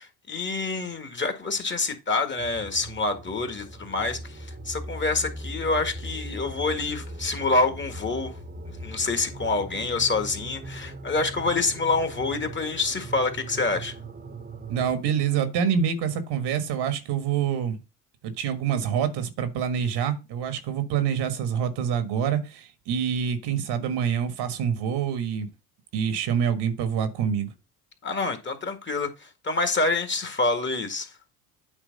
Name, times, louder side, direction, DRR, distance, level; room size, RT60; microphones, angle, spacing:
voice 1, 0.0-8.3 8.8-13.9 28.0-31.1, left 3 dB, 25° left, 1.8 m, -27 dB
sound 1, 2.4-14.9, right 1 dB, 20° right, 1.2 m, -39 dB
voice 2, 14.7-17.8 18.2-25.5 25.9-27.5, right 8 dB, 60° right, 1.6 m, -26 dB
9.0 x 3.4 x 5.2 m
hypercardioid pair, 75°, 45 cm